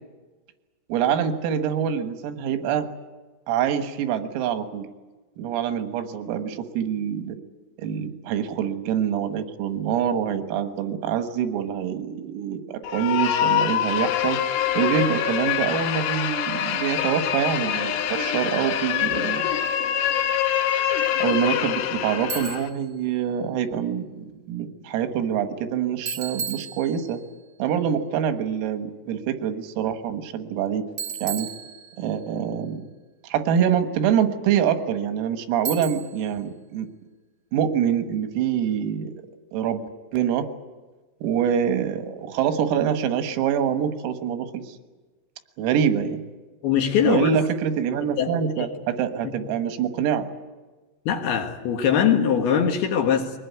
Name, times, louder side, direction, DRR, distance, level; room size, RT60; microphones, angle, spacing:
voice 1, 0.9-2.9 3.5-4.9 5.4-7.4 7.8-14.4 14.8-19.5 20.8-27.2 27.6-30.9 31.2-31.5 32.0-32.8 33.3-36.9 37.5-39.1 39.5-40.5 41.2-44.8 45.6-46.2 47.0-50.3, right 8 dB, 90° right, 8 dB, 4.3 m, -25 dB
sound 1, 12.8-22.7, left 10 dB, 85° left, 4.1 m, -25 dB
Bicycle, 22.3-22.8 26.1-27.3 31.0-32.2 35.6-36.3, right 6 dB, 55° right, 1.4 m, -33 dB
voice 2, 46.6-47.3 48.2-48.3 48.6-48.7 49.2-49.3 51.1-53.3, left 8 dB, 60° left, 4 dB, 3.0 m, -21 dB
23.0 x 20.0 x 9.5 m, 1.3 s
omnidirectional pair, 5.9 m